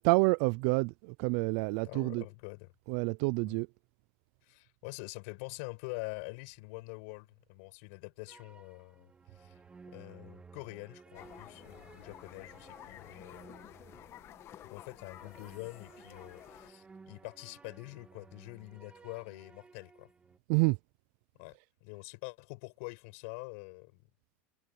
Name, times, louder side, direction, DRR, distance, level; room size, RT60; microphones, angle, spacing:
voice 1, 0.0-2.2 2.9-3.7 20.5-20.8, right 29 dB, 55° right, 0.3 m, -28 dB
voice 2, 1.8-2.7 3.4-3.6 4.4-9.6 9.9-13.7 14.6-20.1 21.4-24.0, left 31 dB, 65° left, 5.5 m, -45 dB
sound 1, 8.3-20.4, right 4 dB, 15° right, 1.9 m, -57 dB
sound 2, 11.1-16.7, left 12 dB, 35° left, 1.3 m, -52 dB
supercardioid pair, 145°, 8 cm